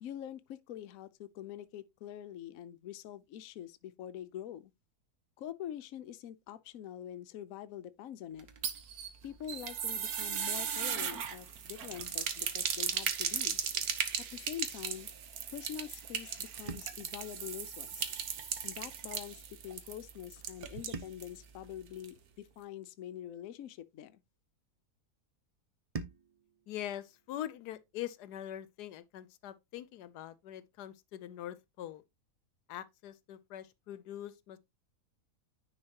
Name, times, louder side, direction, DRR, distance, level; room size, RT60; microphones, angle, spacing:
voice 1, 0.0-4.7 5.4-8.5 9.2-13.6 14.3-15.1 15.5-18.1 18.6-24.2, left 10 dB, 65° left, 1.0 m, -45 dB
sound 1, 8.4-21.4 21.6-21.7 22.0-22.1, right 7 dB, 70° right, 1.5 m, -37 dB
sound 2, 20.9-23.4 25.9-28.5, right 4 dB, 45° right, 0.4 m, -50 dB
voice 2, 26.7-32.0 32.7-34.6, left 12 dB, 85° left, 1.2 m, -43 dB
9.7 x 4.7 x 2.9 m
omnidirectional pair, 1.7 m